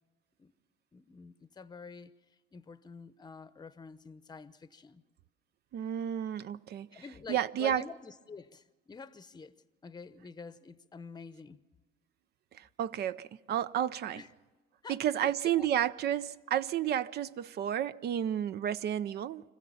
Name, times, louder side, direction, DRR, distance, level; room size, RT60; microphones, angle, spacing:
voice 1, 0.9-2.1 2.5-5.0 6.9-9.5 9.8-11.6 14.1-14.3 14.8-15.7, left 4 dB, 20° left, 0.8 m, -48 dB
voice 2, 5.7-7.0 7.3-7.8 12.5-14.2 14.9-19.4, right 10 dB, 55° right, 0.5 m, -31 dB
25.5 x 15.0 x 7.1 m
supercardioid pair, 95°, 21 cm